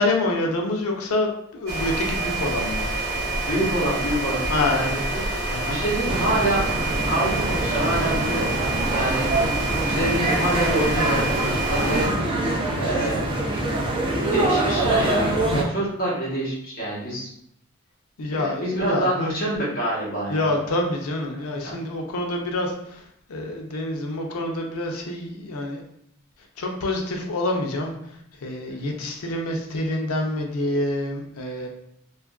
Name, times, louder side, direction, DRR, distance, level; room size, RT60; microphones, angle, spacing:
voice 1, 0.0-2.9 4.5-5.1 5.5-5.8 18.2-19.1 20.3-25.8 26.6-27.9 28.4-31.7, left 2 dB, 80° left, 1 dB, 0.5 m, -27 dB
sound 1, 1.7-12.1, right 2 dB, 50° right, 1.0 m, -27 dB
voice 2, 3.4-5.3 5.7-6.7 7.1-9.3 9.8-12.1 12.8-13.2 13.5-13.6 14.3-17.3 18.3-20.5 21.6-21.7 28.7-29.0, right 1 dB, 40° left, -6 dB, 0.9 m, -26 dB
sound 2, 6.1-15.6, right 2 dB, 25° right, 0.3 m, -25 dB
2.8 x 2.4 x 2.3 m, 0.73 s
head